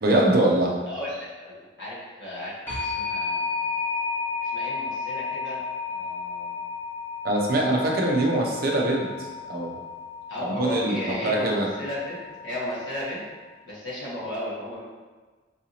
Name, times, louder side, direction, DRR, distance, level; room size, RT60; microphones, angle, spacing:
voice 1, 0.0-0.7 7.2-9.1 9.5-9.8 10.6-11.0 11.2-11.7, right 1 dB, 50° right, 0 dB, 0.6 m, -22 dB
voice 2, 0.9-3.6 4.4-5.6 5.9-6.6 8.3-8.5 10.3-13.2 13.6-14.8, left 1 dB, 70° left, -8 dB, 1.4 m, -35 dB
sound 1, 2.7-13.3, left 5 dB, 10° left, 0.9 m, -33 dB
4.7 x 2.6 x 2.9 m, 1.3 s
head